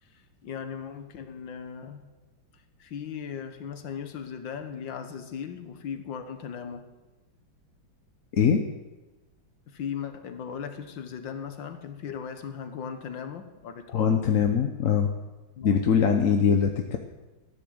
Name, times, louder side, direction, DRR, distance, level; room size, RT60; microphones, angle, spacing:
voice 1, 0.0-2.1 2.8-6.9 9.7-14.3 15.6-16.6, left 7 dB, 75° left, 8 dB, 2.0 m, -38 dB
voice 2, 8.3-8.6 13.9-15.1 15.6-17.0, left 7 dB, 50° left, 4 dB, 1.1 m, -22 dB
14.0 x 10.0 x 7.8 m, 1.1 s
omnidirectional pair, 2.1 m